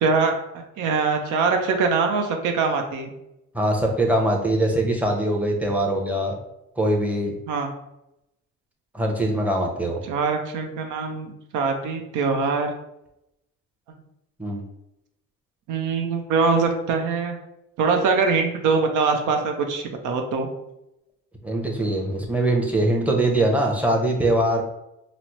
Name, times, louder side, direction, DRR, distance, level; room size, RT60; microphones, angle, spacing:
voice 1, 0.0-3.1 7.5-7.7 10.0-12.7 15.7-17.4 17.8-20.5, right 4 dB, 80° right, 4 dB, 0.7 m, -23 dB
voice 2, 3.5-6.4 6.8-7.3 8.9-10.0 14.4-14.6 21.4-24.6, right 1 dB, 5° right, 0 dB, 0.7 m, -22 dB
4.0 x 2.0 x 3.0 m, 0.86 s
cardioid pair, 90°, 30 cm